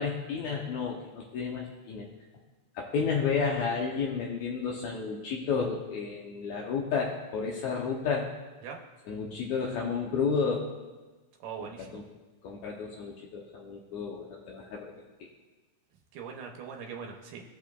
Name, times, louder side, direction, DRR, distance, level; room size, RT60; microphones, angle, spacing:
voice 1, 0.0-2.1 2.7-8.3 9.1-10.6 11.6-12.1 12.4-14.9 15.2-15.3, left 5 dB, 75° left, -1 dB, 1.9 m, -31 dB
voice 2, 11.4-12.0 16.1-17.4, right 6 dB, 85° right, 1 dB, 2.4 m, -41 dB
15.5 x 7.2 x 2.3 m, 1.2 s
omnidirectional pair, 3.6 m